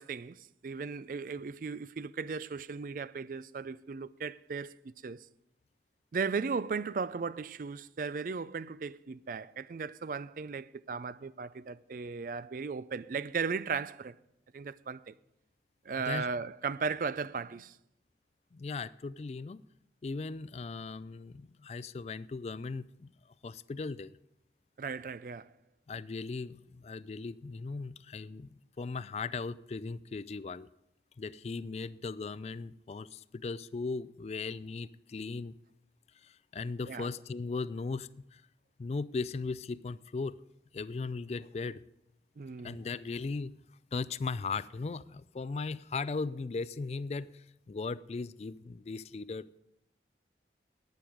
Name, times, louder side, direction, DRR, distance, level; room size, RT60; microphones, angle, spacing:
voice 1, 0.0-5.2 6.1-14.2 14.5-15.1 15.8-17.8 24.8-25.5 36.9-37.1 42.4-42.8, right 5 dB, 50° right, 0.4 m, -36 dB
voice 2, 18.5-19.6 20.0-23.1 23.4-24.1 25.9-30.7 31.2-35.5 36.2-38.4 38.8-40.4 40.7-41.8 42.6-43.5 43.9-49.6, left 4 dB, 35° left, 0.3 m, -38 dB
11.5 x 9.3 x 5.0 m
head